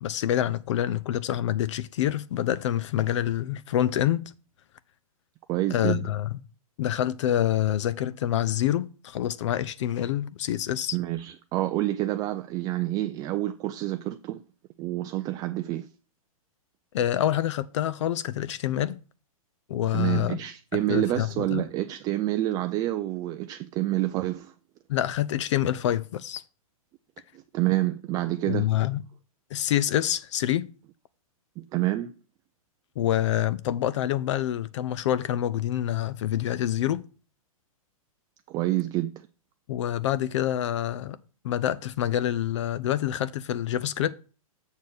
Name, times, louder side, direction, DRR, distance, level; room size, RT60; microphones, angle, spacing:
voice 1, 0.0-4.2 5.7-6.4 6.8-11.0 16.9-19.0 19.7-20.4 20.7-21.6 24.9-26.4 28.5-29.0 29.5-30.7 33.0-37.0 39.7-41.2 41.4-44.2, left 11 dB, 55° left, 0.5 m, -26 dB
voice 2, 5.5-6.0 10.9-14.4 14.8-15.9 19.9-24.5 27.5-28.7 31.6-32.1 38.5-39.1, right 15 dB, 20° right, 0.4 m, -28 dB
7.1 x 4.2 x 6.4 m
hypercardioid pair, 135°, 19 cm